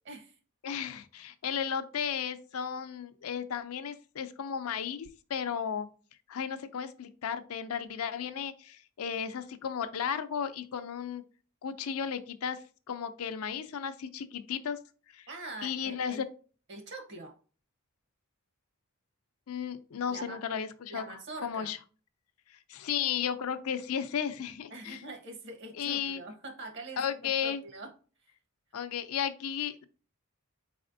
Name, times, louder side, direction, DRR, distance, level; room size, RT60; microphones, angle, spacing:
voice 1, 0.0-0.4 15.3-16.2 16.7-17.3 20.1-20.4 20.9-21.7 24.7-27.9, right 2 dB, 55° right, 5 dB, 1.0 m, -44 dB
voice 2, 0.6-5.9 6.3-11.2 11.6-12.6 12.9-14.8 15.1-15.3 15.6-16.2 19.5-21.0 21.4-21.8 22.7-25.0 25.8-26.2 27.0-27.6 28.7-29.8, left 8 dB, 85° left, 10 dB, 0.5 m, -34 dB
4.2 x 4.1 x 2.6 m, 0.38 s
head